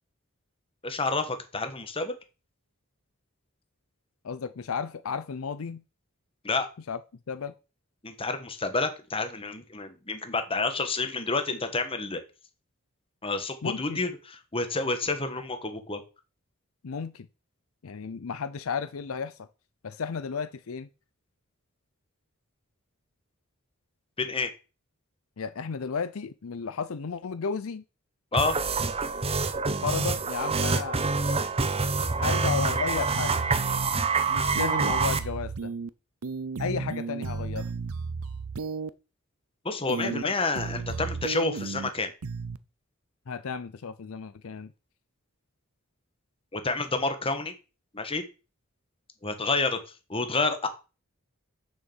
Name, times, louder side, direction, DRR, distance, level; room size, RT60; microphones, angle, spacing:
voice 1, 0.8-2.1 6.4-6.7 8.0-12.2 13.2-16.0 24.2-24.5 28.3-28.6 39.6-42.1 46.5-47.5 47.9-48.2 49.2-49.8 50.1-50.7, left 3 dB, 25° left, 1.4 m, -29 dB
voice 2, 4.2-5.8 6.9-7.0 7.3-7.5 13.6-14.0 16.8-17.3 17.8-19.5 19.8-20.9 25.4-27.8 29.8-31.0 31.6-31.9 32.2-33.4 34.3-35.7 36.6-37.7 40.0-40.3 43.3-44.7, left 5 dB, 70° left, 0.5 m, -33 dB
sound 1, 28.3-35.2, right 4 dB, 25° right, 0.8 m, -26 dB
sound 2, 33.1-33.9 34.6-35.9 36.2-38.9 39.9-40.2 40.6-41.9 42.2-42.6, right 4 dB, 80° right, 0.6 m, -34 dB
6.6 x 6.3 x 7.2 m
head